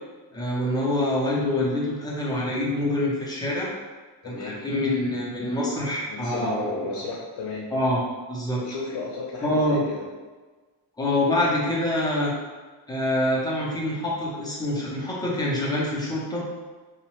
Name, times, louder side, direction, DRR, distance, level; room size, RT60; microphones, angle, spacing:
voice 1, 0.3-3.7 4.2-7.0 7.7-8.0 8.3-8.6 9.4-9.8 11.0-12.3 12.9-16.4, left 1 dB, 10° left, -5 dB, 0.5 m, -25 dB
voice 2, 4.2-4.6 6.1-7.7 8.6-10.0, left 4 dB, 75° left, -4 dB, 0.6 m, -34 dB
2.8 x 2.1 x 3.0 m, 1.3 s
wide cardioid pair, 175°, 42 cm